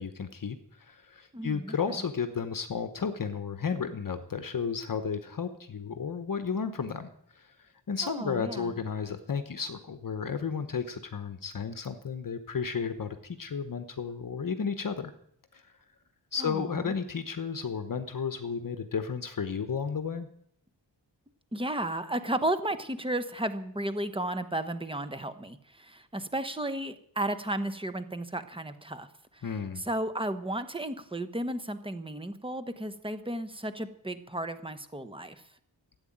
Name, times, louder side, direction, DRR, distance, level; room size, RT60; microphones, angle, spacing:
voice 1, 0.0-15.1 15.5-15.6 16.3-20.3 29.4-29.8, left 6 dB, 50° left, 9 dB, 1.0 m, -33 dB
voice 2, 1.3-2.0 8.0-8.7 16.4-16.9 21.5-29.1 29.3-29.4 29.7-35.4, right 1 dB, 10° right, 10 dB, 1.0 m, -34 dB
14.0 x 8.8 x 8.7 m, 0.70 s
wide cardioid pair, 175°, 44 cm